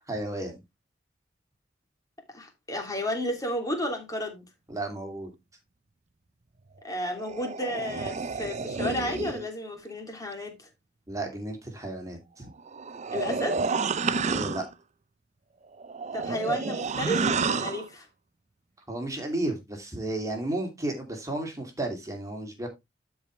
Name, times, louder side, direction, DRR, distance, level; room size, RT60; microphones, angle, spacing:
voice 1, 0.1-0.6 4.7-5.3 11.1-12.5 14.2-14.7 18.9-22.7, right 1 dB, 15° right, 2.7 m, -33 dB
voice 2, 2.3-4.4 6.8-10.7 13.1-13.6 16.1-18.1, equal, 20° left, 2.8 m, -32 dB
sound 1, 6.9-9.5 12.6-14.7 15.7-17.9, right 4 dB, 40° right, 0.5 m, -30 dB
12.5 x 4.9 x 3.2 m
head